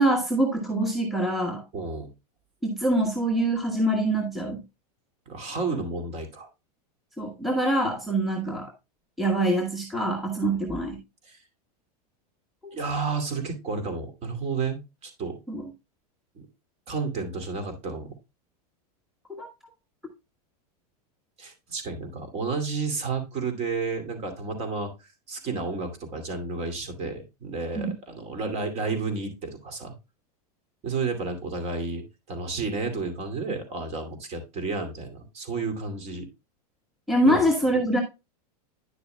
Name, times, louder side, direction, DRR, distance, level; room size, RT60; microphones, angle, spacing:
voice 1, 0.0-1.6 2.6-4.6 7.2-8.7 9.2-11.0 12.6-12.7 15.5-15.6 19.3-19.5 27.7-27.9 37.1-38.0, right 1 dB, ahead, 2 dB, 1.2 m, -24 dB
voice 2, 1.7-2.1 5.3-6.5 10.4-10.6 11.2-11.4 12.7-15.4 16.3-16.5 16.9-18.1 21.4-29.9 30.8-36.3 37.2-37.4, right 4 dB, 30° right, 7 dB, 2.4 m, -31 dB
10.0 x 6.7 x 2.2 m, 0.25 s
supercardioid pair, 140°, 20 cm